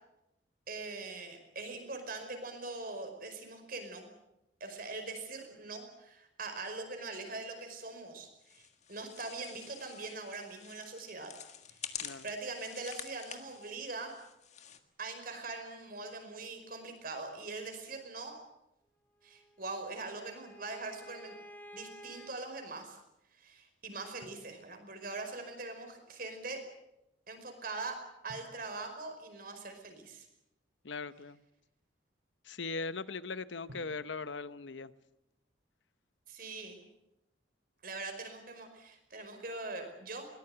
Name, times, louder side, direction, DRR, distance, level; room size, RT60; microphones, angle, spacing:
voice 1, 0.7-4.1 4.6-11.3 12.2-14.1 15.0-18.4 19.2-21.4 21.7-23.0 23.4-26.6 27.3-28.0 28.2-30.2 36.3-36.8 37.8-40.3, right 3 dB, 50° right, 6 dB, 5.2 m, -42 dB
sound 1, 8.4-14.8, left 8 dB, 35° left, 1.8 m, -48 dB
Bowed string instrument, 19.2-22.4, right 1 dB, 10° left, 2.8 m, -53 dB
Drum, 24.2-25.3 28.3-30.1 33.7-35.7, equal, 90° right, 3.2 m, -59 dB
voice 2, 30.8-31.4 32.4-34.9, left 4 dB, 75° left, 14 dB, 0.9 m, -39 dB
22.0 x 20.0 x 8.0 m, 0.88 s
head